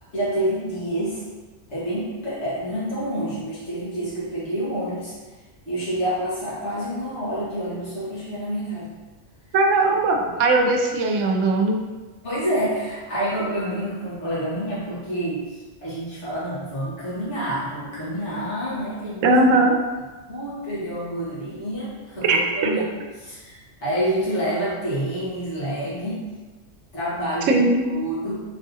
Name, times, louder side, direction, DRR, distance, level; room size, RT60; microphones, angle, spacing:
voice 1, 0.1-1.2 1.7-5.1 5.7-8.9 9.9-10.0 12.2-19.2 20.3-22.8 23.2-26.2 26.9-28.5, right 1 dB, 65° left, -10 dB, 1.9 m, -28 dB
voice 2, 9.5-11.8 19.2-19.8 22.3-22.7 27.5-27.8, right 2 dB, 80° right, 2 dB, 1.0 m, -19 dB
4.0 x 3.6 x 2.7 m, 1.3 s
omnidirectional pair, 1.3 m